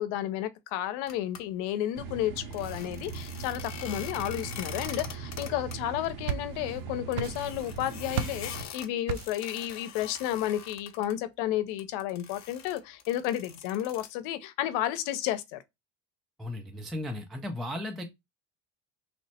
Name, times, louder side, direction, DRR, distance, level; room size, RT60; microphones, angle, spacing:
voice 1, 0.0-15.6, left 12 dB, 70° left, 0.7 m, -32 dB
sound 1, 1.1-1.4 2.4-5.8 6.0-6.1 6.5-6.6 7.1-11.1 11.8-14.1, left 8 dB, 35° left, 0.6 m, -43 dB
sound 2, 1.9-8.7, right 5 dB, 45° right, 0.8 m, -40 dB
sound 3, 5.9-6.8 7.1-7.8 8.1-8.5 9.1-9.5, right 8 dB, 80° right, 0.6 m, -34 dB
voice 2, 16.4-18.0, left 1 dB, ahead, 0.3 m, -35 dB
3.2 x 2.0 x 4.1 m
supercardioid pair, 95°, 47 cm